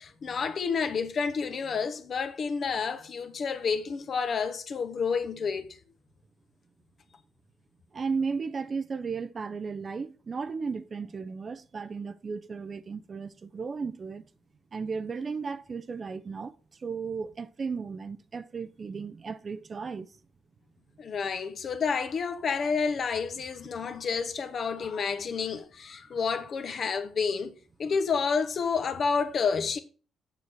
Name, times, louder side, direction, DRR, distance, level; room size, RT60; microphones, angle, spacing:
voice 1, 0.0-5.8 21.0-27.5 27.8-29.8, left 5 dB, 50° left, 1.0 m, -29 dB
voice 2, 7.9-14.2 14.7-20.1, right 5 dB, 40° right, 0.5 m, -35 dB
6.8 x 6.4 x 4.4 m
cardioid pair, 90°, 0 cm